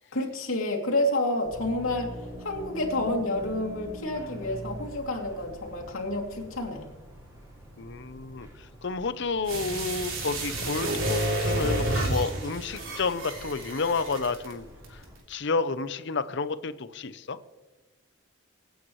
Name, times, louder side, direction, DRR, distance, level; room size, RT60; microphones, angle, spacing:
voice 1, 0.1-6.9, left 1 dB, 80° left, 0 dB, 2.7 m, -29 dB
sound 1, 1.4-15.2, equal, 15° right, 5.1 m, -45 dB
voice 2, 7.8-8.5 8.8-14.6 15.3-17.4, left 4 dB, 60° left, 13 dB, 0.7 m, -30 dB
sound 2, 9.5-14.5 14.8-14.9, right 1 dB, 70° right, 3.4 m, -30 dB
25.5 x 9.2 x 3.1 m, 1.2 s
head